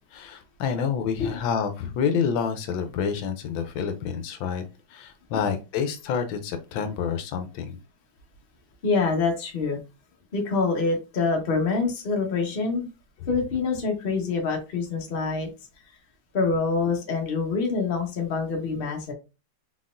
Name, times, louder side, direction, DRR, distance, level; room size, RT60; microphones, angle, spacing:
voice 1, 0.1-4.6 4.9-7.8, left 7 dB, 80° left, 8 dB, 1.3 m, -28 dB
voice 2, 8.8-9.8 10.3-12.9 13.3-15.5 16.3-19.1, left 4 dB, 35° left, 2 dB, 1.0 m, -25 dB
4.1 x 4.0 x 2.5 m, 0.29 s
omnidirectional pair, 2.2 m